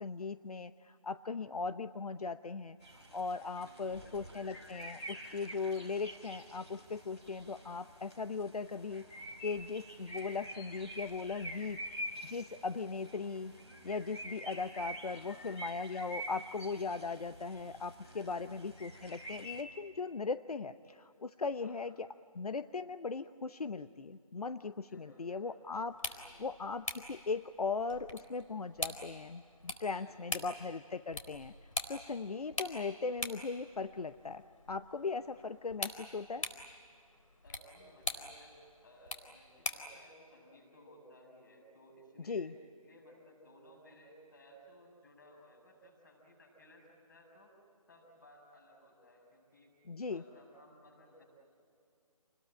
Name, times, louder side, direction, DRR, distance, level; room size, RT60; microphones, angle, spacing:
voice 1, 0.0-2.8 3.1-13.5 13.8-22.1 22.3-31.5 31.9-34.4 34.7-36.5 42.2-42.5 49.9-50.2, left 4 dB, 85° left, 12 dB, 0.8 m, -39 dB
sound 1, 2.8-19.6, right 1 dB, 5° left, 1.0 m, -47 dB
voice 2, 3.6-4.4 15.1-15.5 18.0-18.4 21.6-21.8 24.9-25.6 26.1-26.5 30.0-30.5 35.3-35.4 37.4-38.6 38.8-42.6 42.8-47.6 47.9-49.8 50.1-51.2, equal, 30° left, 2 dB, 6.8 m, -59 dB
sound 2, 25.8-40.0, left 2 dB, 60° left, 4.2 m, -44 dB
29.0 x 21.0 x 8.8 m, 2.5 s
figure-of-eight pair, 180°, 19 cm